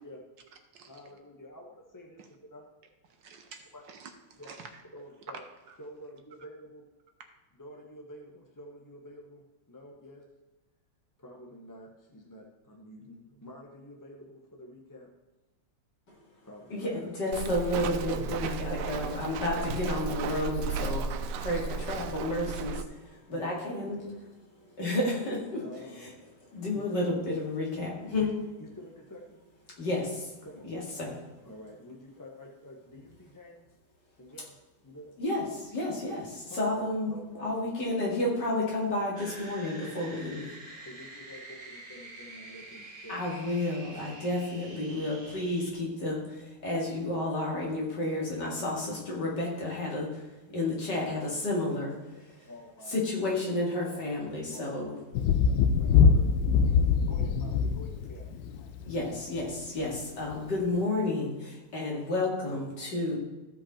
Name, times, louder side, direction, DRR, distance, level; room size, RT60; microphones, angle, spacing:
voice 1, 0.9-2.6 3.7-3.8 4.4-4.5 4.9-5.4 5.8-6.8 7.6-10.2 11.2-15.1 16.4-17.1 19.0-19.3 21.7-22.0 23.3-23.9 25.6-26.2 26.9-27.0 28.2-28.3 28.6-29.4 30.4-30.7 31.4-33.6 34.2-34.6 34.8-35.1 36.5-37.4 37.8-37.9 40.8-43.3 43.9-44.2 50.5-50.6 52.5-52.9 54.5-54.9 55.2-58.2, left 1 dB, 20° left, 0 dB, 0.5 m, -48 dB
voice 2, 3.2-4.8 5.7-5.8, right 5 dB, 65° right, 5 dB, 1.5 m, -49 dB
voice 3, 16.7-24.3 24.5-28.4 29.8-31.3 35.2-40.5 43.1-52.5 52.8-54.9 58.9-63.2, left 2 dB, 55° left, -3 dB, 2.8 m, -31 dB
Walk footsteps, 17.3-22.8, right 5 dB, 90° right, 1.6 m, -34 dB
sound 1, 39.2-45.7, right 2 dB, 20° right, 2.0 m, -47 dB
Thunder, 55.1-59.0 60.3-60.4, left 6 dB, 75° left, 1.2 m, -23 dB
14.5 x 5.3 x 4.3 m, 1.1 s
omnidirectional pair, 2.3 m